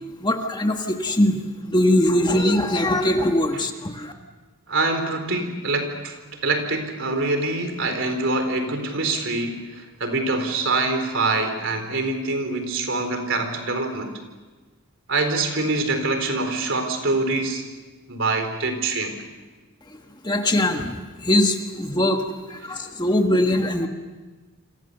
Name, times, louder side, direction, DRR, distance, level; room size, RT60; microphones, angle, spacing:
voice 1, 0.2-1.4 1.7-4.1 20.2-20.9 21.2-22.2 22.5-23.9, left 1 dB, 20° left, 4 dB, 1.5 m, -21 dB
voice 2, 4.7-6.2 6.4-14.1 15.1-17.6 18.1-19.2, right 3 dB, 55° right, 6 dB, 4.1 m, -25 dB
29.0 x 26.0 x 6.9 m, 1.3 s
head